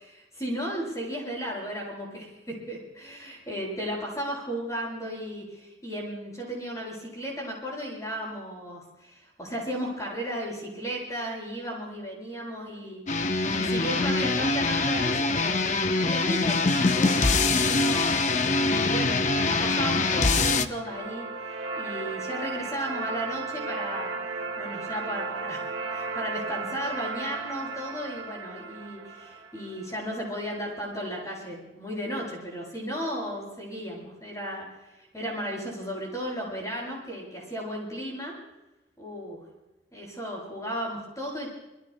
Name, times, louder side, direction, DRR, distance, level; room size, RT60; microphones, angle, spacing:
voice 1, 0.0-13.3 13.5-24.2 24.6-38.4 39.0-39.4 39.9-41.5, equal, 15° left, -3 dB, 7.5 m, -35 dB
sound 1, 13.1-20.7, left 3 dB, 40° left, 0.8 m, -24 dB
sound 2, 20.3-30.3, right 4 dB, 70° right, 1.4 m, -35 dB
27.5 x 23.5 x 2.2 m, 1.0 s
head